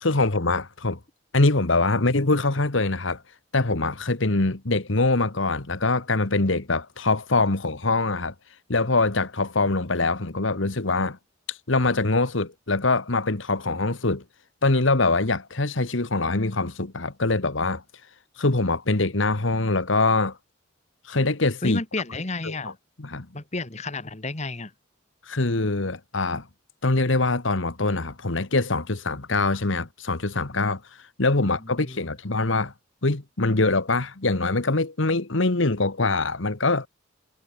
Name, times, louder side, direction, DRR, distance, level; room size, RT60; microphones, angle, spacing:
voice 1, 0.0-1.0 1.3-3.2 3.5-8.3 8.7-11.2 11.5-14.2 14.6-17.8 18.4-20.4 21.0-21.8 22.4-22.5 23.0-23.3 25.3-26.5 26.8-30.8 31.2-32.7 33.0-36.9, left 3 dB, 70° left, 1.6 m, -23 dB
voice 2, 21.6-22.8 23.3-24.7 31.8-32.0, left 2 dB, 35° left, 1.7 m, -31 dB
head